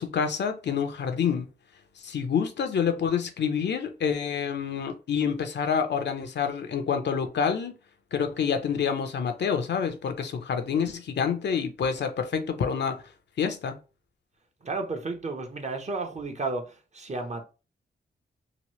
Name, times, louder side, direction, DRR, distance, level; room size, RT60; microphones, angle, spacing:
voice 1, 0.0-1.5 2.0-7.8 8.1-13.0 13.4-13.8, left 7 dB, 70° left, 0.6 m, -27 dB
voice 2, 14.6-17.4, right 3 dB, 40° right, 0.7 m, -32 dB
2.9 x 2.2 x 3.1 m
cardioid pair, 60°, 19 cm